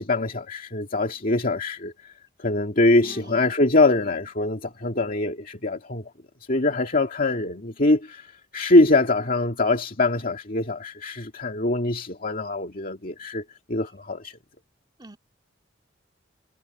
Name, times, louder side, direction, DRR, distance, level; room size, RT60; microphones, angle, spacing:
voice 1, 0.0-2.1 2.4-6.0 6.5-13.4 13.7-14.4, left 2 dB, 45° left, 2.2 m, -23 dB
voice 2, 3.0-3.5 15.0-15.2, right 1 dB, 20° right, 3.2 m, -45 dB
head